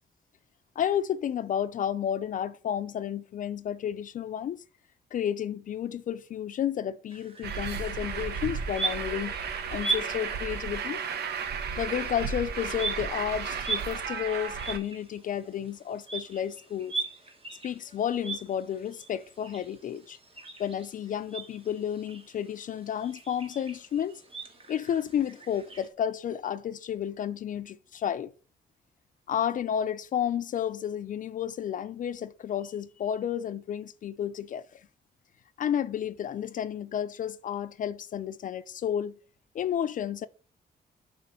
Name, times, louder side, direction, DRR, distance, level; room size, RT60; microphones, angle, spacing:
voice 1, 0.8-4.6 5.1-9.3 9.7-11.0 11.8-16.9 17.6-20.2 20.6-24.2 24.7-28.3 29.3-34.8 35.6-39.2 39.5-40.3, left 9 dB, 55° left, 0.4 m, -31 dB
sound 1, 7.1-25.9, right 4 dB, 35° right, 1.3 m, -40 dB
Truck, 7.4-14.8, right 6 dB, 80° right, 0.9 m, -34 dB
6.8 x 3.1 x 6.0 m
cardioid pair, 125°, 17 cm